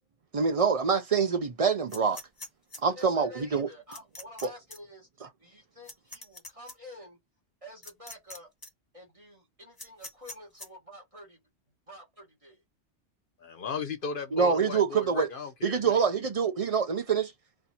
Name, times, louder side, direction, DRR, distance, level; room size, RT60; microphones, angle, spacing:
voice 1, 0.3-2.2 2.8-3.7 4.4-4.5 5.2-5.3 14.3-15.3 15.6-17.3, right 6 dB, 45° right, 0.4 m, -25 dB
sound 1, 1.9-2.8 3.9-4.4 4.7-4.8 5.8-6.7 7.8-8.4 8.6-8.7 9.8-10.7, left 2 dB, 20° left, 1.3 m, -43 dB
voice 2, 3.0-5.1 5.4-7.2 7.6-8.5 8.9-11.4 11.9-12.6, left 1 dB, 30° right, 1.7 m, -49 dB
voice 3, 13.4-16.2, left 5 dB, 50° left, 0.9 m, -36 dB
4.2 x 2.7 x 4.2 m
omnidirectional pair, 1.2 m